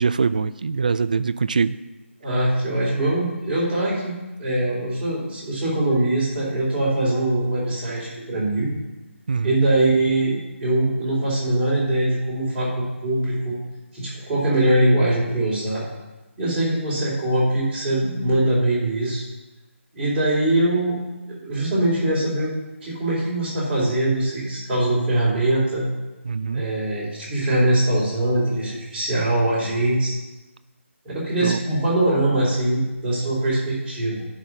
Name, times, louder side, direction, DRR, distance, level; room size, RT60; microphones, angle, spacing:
voice 1, 0.0-1.8 9.3-9.6 26.2-26.6 31.4-31.6, right 5 dB, 35° right, 14 dB, 0.4 m, -23 dB
voice 2, 2.2-4.1 4.4-8.7 9.4-13.6 13.9-15.8 16.4-19.2 19.9-21.0 21.3-22.5 22.8-25.9 26.5-30.1 31.0-34.2, right 1 dB, 10° right, -10 dB, 3.4 m, -22 dB
9.7 x 5.5 x 5.9 m, 1.1 s
figure-of-eight pair, 170°, 7 cm